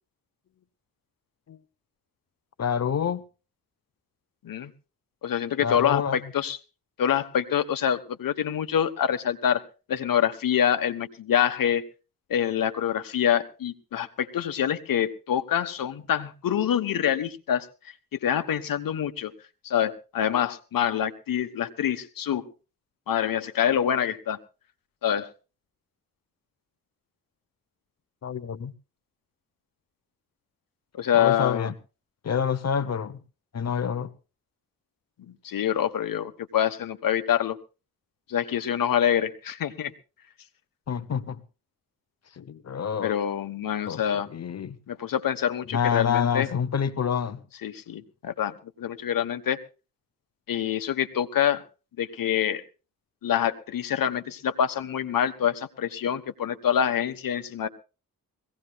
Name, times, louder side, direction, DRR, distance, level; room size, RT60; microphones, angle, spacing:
voice 1, 2.6-3.2 5.6-6.2 28.2-28.7 31.1-31.7 32.2-33.2 33.5-34.1 40.9-41.4 42.4-43.1 43.9-44.0 44.3-44.8 45.7-47.4, left 7 dB, 50° left, 0.9 m, -27 dB
voice 2, 5.2-6.6 7.0-9.6 9.9-11.8 12.3-17.7 18.1-19.3 19.6-22.5 23.1-24.4 25.0-25.3 30.9-31.7 35.3-37.6 38.3-39.9 43.0-44.3 44.9-46.5 47.6-49.6 50.5-51.6 52.0-52.6 53.2-57.7, left 9 dB, 75° left, 1.3 m, -26 dB
22.0 x 17.0 x 2.4 m
wide cardioid pair, 110°, 34 cm